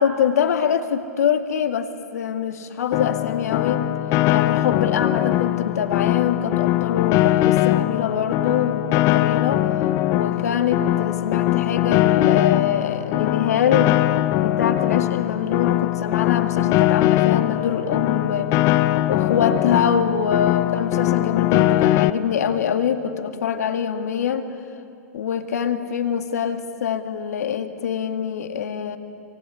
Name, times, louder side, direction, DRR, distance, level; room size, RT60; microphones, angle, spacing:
voice 1, 0.0-3.9 4.3-9.7 10.1-14.0 14.4-18.5 19.1-24.5 25.1-29.0, left 8 dB, 75° left, 7 dB, 2.0 m, -24 dB
Piano, 2.9-22.1, left 15 dB, 40° left, 0.8 m, -21 dB
25.0 x 24.0 x 9.7 m, 2.5 s
hypercardioid pair, 110°, 9 cm